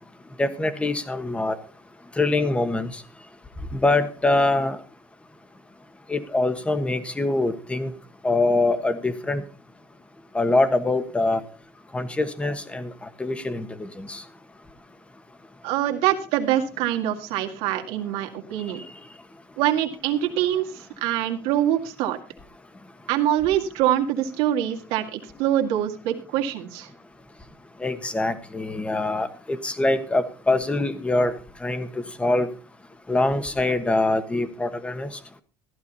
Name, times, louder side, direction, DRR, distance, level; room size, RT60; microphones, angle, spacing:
voice 1, 0.4-1.6 2.2-3.0 3.7-4.8 6.1-7.9 8.2-9.4 10.3-11.4 11.9-14.2 27.8-31.3 31.6-32.5 33.1-35.1, left 2 dB, 10° left, 11 dB, 1.3 m, -24 dB
voice 2, 15.6-18.8 19.6-22.2 23.1-26.9, right 11 dB, 75° right, 4 dB, 2.1 m, -24 dB
14.5 x 11.5 x 4.1 m, 0.37 s
cardioid pair, 120°, 10 cm